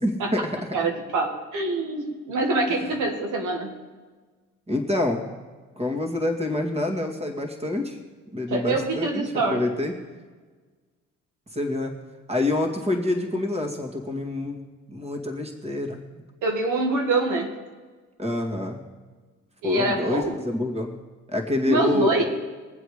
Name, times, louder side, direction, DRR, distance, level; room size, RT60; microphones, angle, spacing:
voice 1, 0.0-0.6 2.7-2.9 4.7-5.3 5.8-8.0 8.3-9.2 9.5-9.9 11.5-11.9 12.3-14.6 14.9-16.0 18.2-18.8 19.6-20.9 21.3-22.2, left 2 dB, 20° right, 3 dB, 2.3 m, -27 dB
voice 2, 0.7-3.7 8.5-9.6 16.4-17.5 19.6-20.4 21.7-22.2, right 2 dB, 85° right, 3 dB, 2.0 m, -25 dB
22.0 x 7.8 x 5.0 m, 1.4 s
cardioid pair, 90°, 30 cm